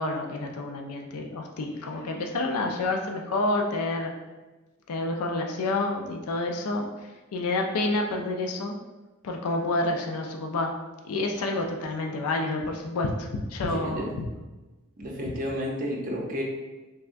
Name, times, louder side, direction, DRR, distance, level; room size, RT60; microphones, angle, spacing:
voice 1, 0.0-4.1 4.9-6.9 7.3-8.8 9.2-10.7 11.0-14.3, left 2 dB, 80° left, 3 dB, 0.4 m, -29 dB
voice 2, 13.7-14.1 15.0-16.4, equal, 40° right, -2 dB, 0.7 m, -31 dB
3.4 x 3.3 x 2.5 m, 1.2 s
head